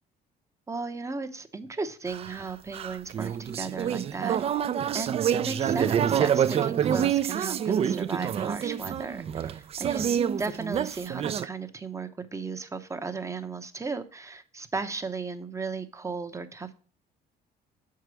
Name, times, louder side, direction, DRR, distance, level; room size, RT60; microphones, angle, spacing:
voice 1, 0.7-16.7, right 4 dB, 15° right, 8 dB, 0.7 m, -36 dB
sound 1, 2.1-11.5, right 9 dB, 35° right, 0.4 m, -27 dB
6.6 x 4.8 x 6.1 m, 0.42 s
cardioid pair, 110°, 17 cm